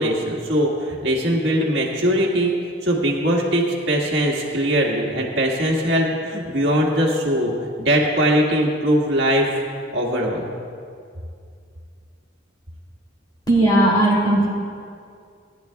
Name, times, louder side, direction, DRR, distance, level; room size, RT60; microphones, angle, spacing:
voice 1, 0.0-2.5 2.8-9.5 9.9-10.5, equal, 60° right, -2 dB, 1.8 m, -21 dB
voice 2, 13.5-14.5, right 1 dB, 20° left, -4 dB, 2.8 m, -16 dB
19.0 x 10.5 x 2.3 m, 2.3 s
head